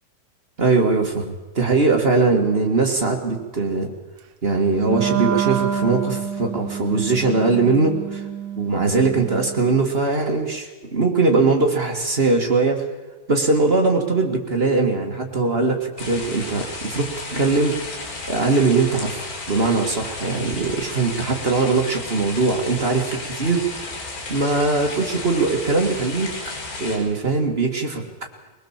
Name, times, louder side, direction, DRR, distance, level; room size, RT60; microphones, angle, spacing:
voice 1, 0.6-3.9 4.4-8.2 8.6-12.8 13.3-17.8 18.3-23.6 24.3-26.3 26.8-28.0, right 3 dB, 50° right, 2 dB, 0.7 m, -21 dB
Wind instrument woodwind instrument, 4.8-9.9, right 8 dB, 65° right, 2.8 m, -28 dB
sound 1, 16.0-27.0, left 3 dB, 70° left, 6.6 m, -33 dB
22.0 x 20.5 x 7.4 m, 1.2 s
omnidirectional pair, 4.5 m